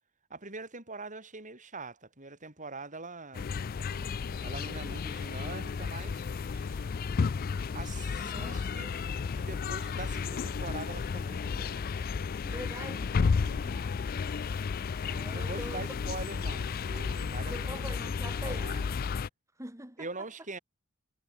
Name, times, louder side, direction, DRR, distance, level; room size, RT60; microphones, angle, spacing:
voice 1, 0.3-3.5 4.4-6.2 7.7-8.9 9.3-11.9 12.4-12.9 13.4-13.8 15.3-17.9 18.4-18.8 20.0-20.6, right 3 dB, 35° right, 6.9 m, -43 dB
sound 1, 3.3-19.3, left 5 dB, 40° left, 0.4 m, -33 dB
sound 2, 3.7-12.2, right 3 dB, 80° right, 5.6 m, -61 dB
voice 2, 8.2-8.7 12.5-13.2 15.1-15.8 17.5-19.0 19.6-20.1, right 1 dB, 15° right, 2.7 m, -43 dB
head